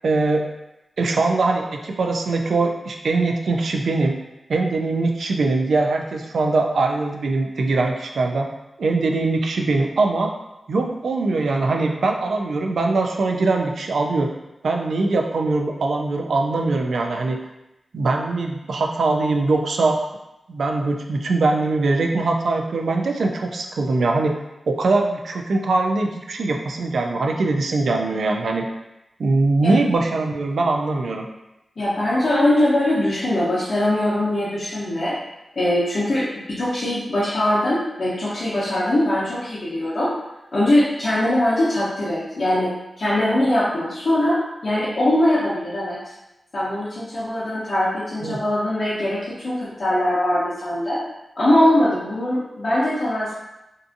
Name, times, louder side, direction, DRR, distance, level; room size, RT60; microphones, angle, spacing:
voice 1, 0.0-0.5 1.0-4.2 4.5-8.5 8.8-10.3 10.7-14.3 14.6-17.4 17.9-20.0 20.5-24.4 24.7-28.7 29.2-31.3 48.2-48.4, right 3 dB, 80° right, 3 dB, 0.3 m, -22 dB
voice 2, 31.8-35.1 35.6-40.1 40.5-42.7 43.0-46.0 46.5-51.0 51.4-53.4, left 1 dB, 50° left, -10 dB, 0.7 m, -21 dB
2.6 x 2.5 x 2.5 m, 0.94 s
wide cardioid pair, 90°, 0 cm